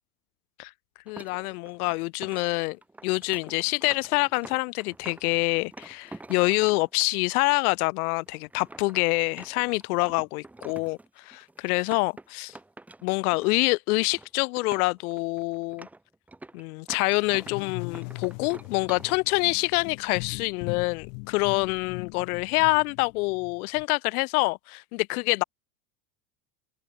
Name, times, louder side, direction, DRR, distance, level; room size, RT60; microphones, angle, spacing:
voice 1, 1.1-2.8 3.0-12.5 13.0-15.9 16.5-25.4, left 25 dB, 85° left, 1.0 m, -26 dB
sound 1, 1.1-7.1 7.7-7.8 8.2-13.7 14.0-14.3 14.6-17.6 17.9-19.1, right 2 dB, 5° right, 0.7 m, -47 dB
sound 2, 17.1-23.8, left 40 dB or more, 40° left, 0.4 m, -40 dB
open air
cardioid pair, 175°, 43 cm